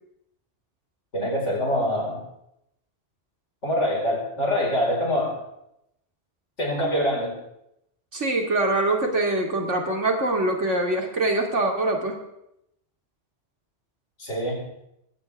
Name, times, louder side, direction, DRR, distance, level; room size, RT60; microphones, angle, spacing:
voice 1, 1.1-2.2 3.6-5.4 6.6-7.3 14.2-14.7, equal, 80° left, -2 dB, 5.4 m, -25 dB
voice 2, 8.1-12.2, right 2 dB, 85° right, 2 dB, 2.9 m, -24 dB
20.5 x 16.0 x 3.5 m, 0.81 s
omnidirectional pair, 1.2 m